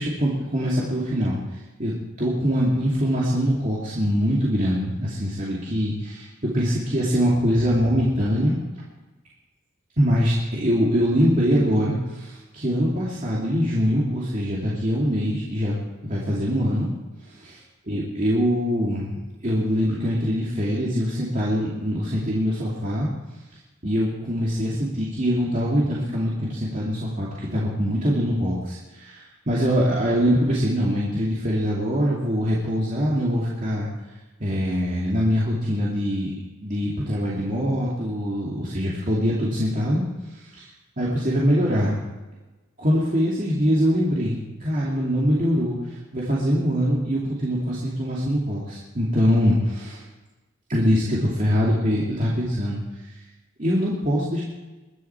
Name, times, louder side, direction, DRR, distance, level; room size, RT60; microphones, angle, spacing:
voice 1, 0.0-1.4 1.8-8.6 10.0-15.8 16.0-16.9 17.2-17.3 17.9-19.2 19.4-23.1 23.8-33.9 34.4-36.3 36.6-40.0 40.3-40.7 41.0-42.0 42.8-50.0 50.7-53.1 53.6-54.4, equal, 40° right, -6 dB, 2.7 m, -23 dB
22.0 x 12.0 x 4.6 m, 1.1 s
head